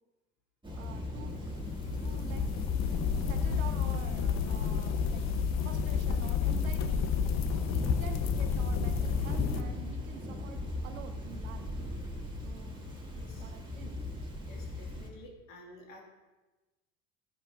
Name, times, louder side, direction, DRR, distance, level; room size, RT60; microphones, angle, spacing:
Thunder / Rain, 0.6-15.1, left 2 dB, 10° right, 2.4 m, -38 dB
voice 1, 0.8-1.6 2.0-2.5 2.8-7.1 7.4-11.7 12.4-12.9 13.1-14.0, right 8 dB, 80° right, 7 dB, 1.1 m, -48 dB
sound 1, 1.4-9.6, left 7 dB, 40° left, 0.8 m, -31 dB
voice 2, 13.1-13.5 14.4-16.0, left 1 dB, 70° left, 0 dB, 2.5 m, -52 dB
15.0 x 10.0 x 2.7 m, 1.2 s
hypercardioid pair, 75°, 40 cm